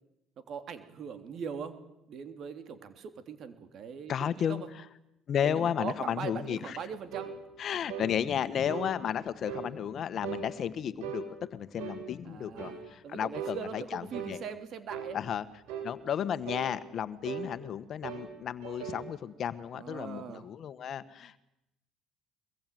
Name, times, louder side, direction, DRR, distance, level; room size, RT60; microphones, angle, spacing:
voice 1, 0.5-1.7 2.1-4.7 5.4-7.3 12.3-15.2 19.7-20.5, right 7 dB, 55° right, 9 dB, 3.3 m, -41 dB
voice 2, 4.1-4.6 5.3-6.8 7.6-14.4 15.1-15.4 15.8-21.5, left 9 dB, 50° left, 13 dB, 1.6 m, -33 dB
sound 1, 7.1-7.4 7.9-8.1 8.7-8.9 9.5-9.7 10.2-10.5 11.0-11.3 11.8-12.0 12.6-12.8 13.3-13.6 14.1-14.4 14.9-15.1 15.7-15.9 16.4-16.7 17.2-17.5 18.0-18.3 18.6-19.1, right 7 dB, 80° right, 7.7 m, -38 dB
24.0 x 22.0 x 9.4 m, 0.87 s
supercardioid pair, 80°, 0 cm